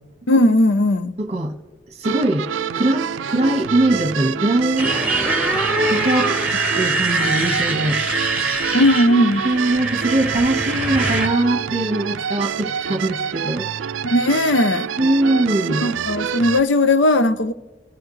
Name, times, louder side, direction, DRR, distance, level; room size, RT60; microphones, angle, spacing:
voice 1, 0.3-1.1 8.7-9.5 14.0-14.9 15.8-17.5, left 1 dB, 80° left, 0.7 m, -17 dB
voice 2, 1.2-1.6 2.0-2.5 2.7-4.9 5.4-5.5 5.9-6.3 6.7-8.0 9.4-13.7 15.0-15.9, right 1 dB, 35° right, 1.3 m, -21 dB
sound 1, 2.0-16.6, right 8 dB, 85° right, 0.4 m, -27 dB
Motorcycle, 4.8-11.3, right 2 dB, 5° right, 1.9 m, -23 dB
29.5 x 15.0 x 3.2 m
head